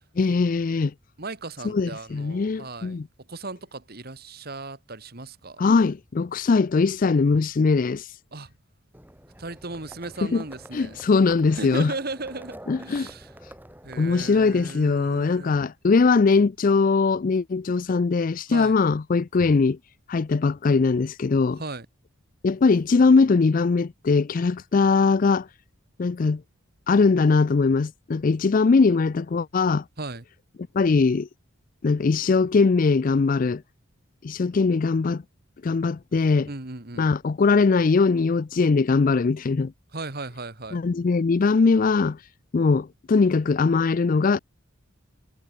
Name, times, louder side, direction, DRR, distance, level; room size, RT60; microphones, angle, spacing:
voice 1, 0.2-0.9 1.6-3.1 5.6-8.1 10.3-10.4 10.7-11.9 12.7-13.1 14.0-19.8 20.1-21.6 22.4-25.5 26.0-26.4 26.9-29.8 30.7-31.3 31.8-33.6 34.2-35.2 35.6-36.5 37.0-39.7 40.7-42.2 42.5-44.4, left 4 dB, 40° left, 0.4 m, -21 dB
voice 2, 1.2-3.0 3.3-5.6 8.3-8.5 9.4-11.0 11.5-13.3 13.8-15.6 18.5-18.7 21.6-21.9 30.0-30.2 36.5-37.1 39.9-40.8, right 3 dB, 45° right, 2.0 m, -36 dB
Livestock farm animals working animals, 8.9-14.7, right 1 dB, 10° right, 5.4 m, -47 dB
head